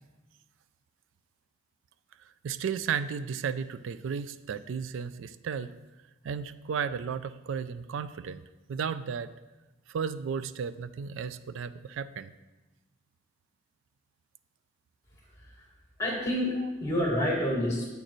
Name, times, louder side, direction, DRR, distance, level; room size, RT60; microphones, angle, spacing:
voice 1, 2.4-5.7 6.2-8.4 8.7-9.3 9.9-12.3, right 6 dB, 65° right, 14 dB, 0.3 m, -34 dB
voice 2, 16.0-17.9, left 1 dB, 15° left, -3 dB, 2.0 m, -28 dB
8.4 x 6.5 x 3.1 m, 1.1 s
head